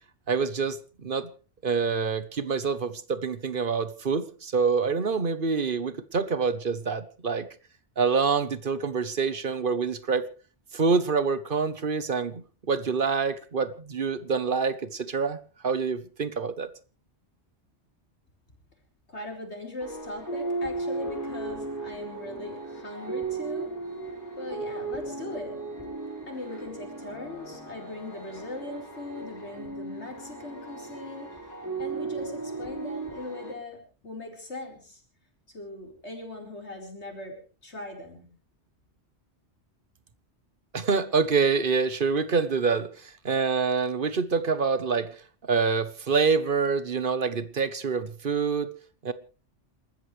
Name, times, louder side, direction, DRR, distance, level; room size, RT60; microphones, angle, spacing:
voice 1, 0.3-1.3 1.6-7.5 8.0-10.3 10.7-15.4 15.6-16.7 40.7-42.9 43.2-45.1 45.5-48.7 49.0-49.1, right 5 dB, 50° right, 1.2 m, -26 dB
voice 2, 19.1-23.7 24.4-25.6 26.3-31.3 31.8-35.0 35.5-37.4 37.6-38.3, left 2 dB, 70° left, 4.7 m, -40 dB
sound 1, 19.8-33.5, right 3 dB, 15° right, 4.7 m, -36 dB
28.0 x 14.0 x 3.3 m
omnidirectional pair, 1.2 m